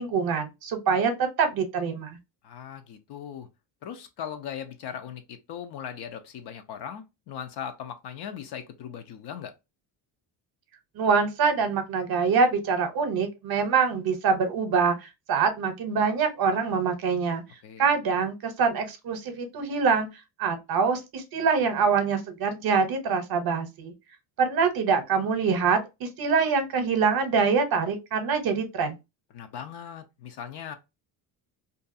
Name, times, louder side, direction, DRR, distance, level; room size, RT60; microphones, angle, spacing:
voice 1, 0.0-2.2 11.0-17.4 17.8-20.1 20.4-23.9 24.4-29.0, right 5 dB, 50° right, 0.7 m, -25 dB
voice 2, 2.4-3.5 3.8-9.5 17.6-17.9 29.3-30.7, left 8 dB, 60° left, 0.6 m, -39 dB
2.6 x 2.3 x 2.5 m
cardioid pair, 120°, 46 cm